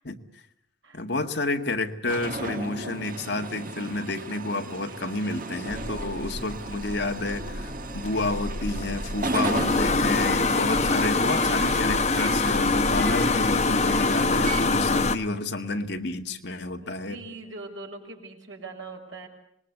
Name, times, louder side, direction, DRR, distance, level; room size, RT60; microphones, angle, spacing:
voice 1, 0.9-17.2, left 2 dB, 60° left, 5 dB, 1.9 m, -30 dB
sound 1, 2.1-14.7, right 2 dB, 45° right, 1.5 m, -35 dB
sound 2, 5.7-15.2, left 3 dB, 35° left, 1.0 m, -25 dB
voice 2, 16.8-19.3, right 3 dB, 80° right, 3 dB, 5.9 m, -42 dB
26.5 x 20.5 x 8.1 m, 0.73 s
head